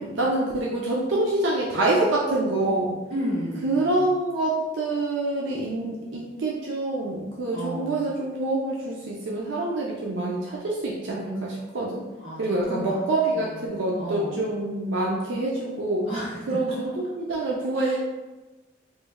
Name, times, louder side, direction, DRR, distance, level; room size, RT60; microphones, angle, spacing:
voice 1, 0.0-2.9 3.6-12.0 12.4-16.1 16.5-18.0, right 2 dB, 80° right, -3 dB, 0.5 m, -26 dB
voice 2, 3.1-4.1 7.5-8.1 12.2-13.0 13.3-14.5 16.1-16.9 17.7-18.0, equal, 35° right, -9 dB, 1.5 m, -33 dB
3.1 x 2.2 x 3.3 m, 1.2 s
head